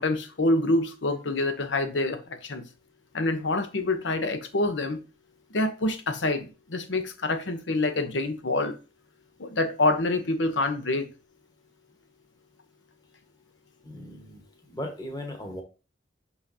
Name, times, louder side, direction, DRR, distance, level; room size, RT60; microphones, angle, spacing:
voice 1, 0.0-2.6 3.1-5.0 5.5-8.7 9.4-11.1, left 2 dB, 85° left, 0.9 m, -26 dB
voice 2, 13.8-14.4 14.7-15.6, left 1 dB, 20° left, 1.4 m, -37 dB
6.3 x 5.6 x 2.8 m
head